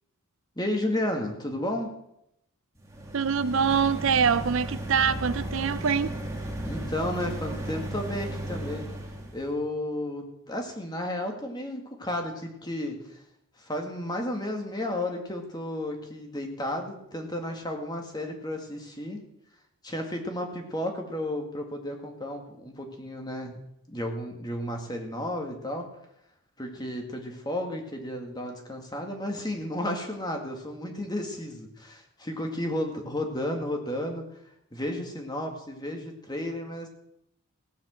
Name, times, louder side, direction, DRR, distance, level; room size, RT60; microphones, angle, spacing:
voice 1, 0.6-1.9 6.6-8.9 9.3-13.2 13.6-19.2 19.8-23.6 23.9-25.9 26.6-34.3 34.7-36.9, left 1 dB, 20° left, 3 dB, 2.0 m, -33 dB
sound 1, 2.8-9.4, right 1 dB, 15° right, 2.2 m, -35 dB
voice 2, 3.1-6.1, right 6 dB, 60° right, 14 dB, 0.5 m, -24 dB
17.0 x 7.4 x 7.7 m, 0.80 s
head